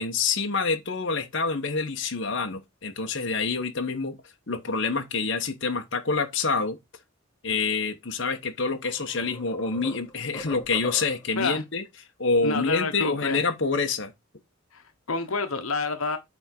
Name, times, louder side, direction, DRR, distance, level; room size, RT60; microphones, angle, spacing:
voice 1, 0.0-4.2 4.5-6.8 7.4-11.8 12.2-14.1, left 4 dB, 55° left, 1.1 m, -27 dB
sound 1, 8.3-8.4 8.8-11.4, left 1 dB, 15° left, 1.3 m, -42 dB
voice 2, 12.4-13.4 14.7-16.2, left 4 dB, 85° left, 1.1 m, -28 dB
8.7 x 3.6 x 4.5 m
head